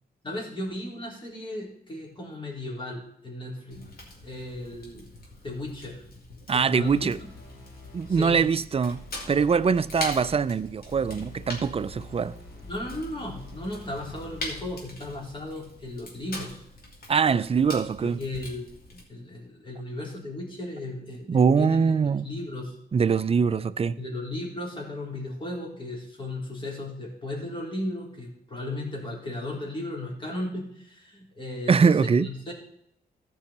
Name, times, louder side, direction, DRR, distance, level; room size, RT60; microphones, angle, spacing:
voice 1, 0.2-3.8 4.2-5.1 5.4-6.0 6.5-7.1 8.1-8.5 12.7-16.6 18.0-18.6 18.9-22.8 24.0-32.5, left 1 dB, 30° left, 3.7 m, -35 dB
Fire, 3.7-19.0, left 2 dB, 65° left, 2.9 m, -43 dB
voice 2, 6.5-7.2 7.9-12.4 17.1-18.2 21.3-22.3 22.9-24.0 31.7-32.3, right 6 dB, 35° right, 0.5 m, -23 dB
sound 1, 6.8-14.8, left 1 dB, 85° left, 3.7 m, -46 dB
14.5 x 5.5 x 4.3 m
cardioid pair, 100°, 17 cm